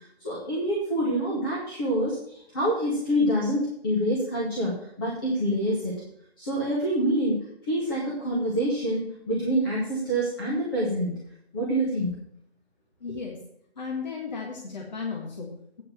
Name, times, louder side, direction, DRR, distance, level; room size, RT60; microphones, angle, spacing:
voice 1, 0.2-6.0 6.4-11.2 11.5-12.1 13.1-13.2, equal, 20° left, -6 dB, 1.9 m, -26 dB
voice 2, 13.0-13.4 13.8-15.8, left 5 dB, 40° left, -1 dB, 1.9 m, -35 dB
9.5 x 5.5 x 7.5 m, 0.71 s
figure-of-eight pair, 160°, 32 cm